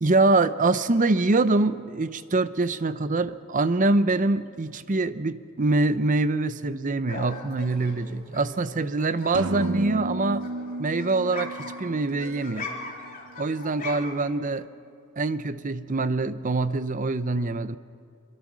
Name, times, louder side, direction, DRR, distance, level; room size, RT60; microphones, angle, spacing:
voice 1, 0.0-10.5 10.8-12.7 13.4-14.7 15.2-17.8, right 2 dB, 35° right, 13 dB, 0.7 m, -24 dB
sound 1, 7.1-9.3 9.6-14.3, left 3 dB, 40° left, 3.3 m, -40 dB
sound 2, 9.3-13.1, right 2 dB, 85° right, 0.9 m, -33 dB
25.0 x 23.0 x 6.2 m, 2.4 s
head